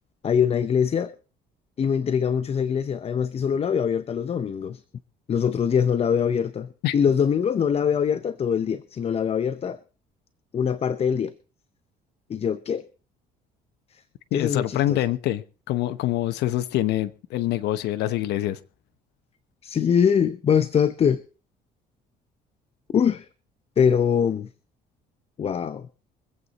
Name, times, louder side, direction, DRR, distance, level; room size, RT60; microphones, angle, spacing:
voice 1, 0.2-1.1 1.8-4.8 5.3-9.8 10.5-11.3 12.3-12.8 13.9-14.0 14.3-15.0 19.6-21.2 22.9-23.3 23.8-24.5 25.4-25.9, left 7 dB, 35° left, 0.7 m, -23 dB
voice 2, 14.3-18.6, left 14 dB, 80° left, 0.9 m, -25 dB
24.0 x 8.2 x 4.0 m
cardioid pair, 110°, 17 cm